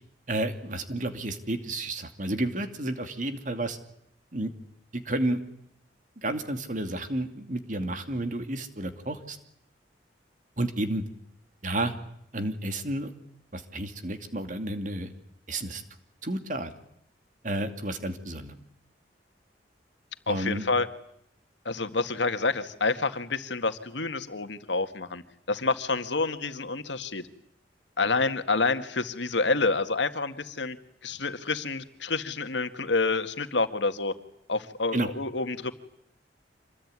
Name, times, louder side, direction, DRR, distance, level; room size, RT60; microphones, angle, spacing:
voice 1, 0.3-3.8 4.3-4.5 4.9-5.4 6.2-9.4 10.6-11.0 11.6-11.9 12.3-13.1 13.5-15.1 15.5-15.8 16.2-16.7 17.4-18.6 20.3-20.6 34.9-35.1, right 1 dB, 45° right, 8 dB, 2.5 m, -31 dB
voice 2, 20.3-20.9 21.7-25.2 25.5-27.2 28.0-30.8 31.0-34.1 34.5-35.7, left 3 dB, 90° left, 9 dB, 1.9 m, -28 dB
26.5 x 21.0 x 9.7 m, 0.75 s
head